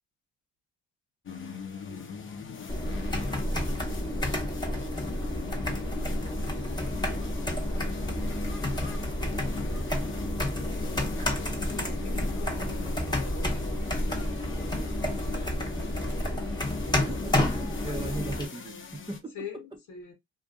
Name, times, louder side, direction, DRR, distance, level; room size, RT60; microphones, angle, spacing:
sound 1, 1.2-19.2, left 5 dB, 40° left, 0.7 m, -41 dB
voice 1, 1.8-2.8 8.6-9.0 9.3-9.5 10.6-11.2 11.7-13.1 13.8-14.3 15.0-16.1 17.8-18.2 19.3-20.1, left 6 dB, 80° left, 1.1 m, -45 dB
sound 2, 2.7-18.5, left 1 dB, 15° left, 0.9 m, -30 dB
voice 2, 16.9-19.8, right 2 dB, 15° right, 0.6 m, -39 dB
2.6 x 2.5 x 2.4 m
cardioid pair, 90°, 30 cm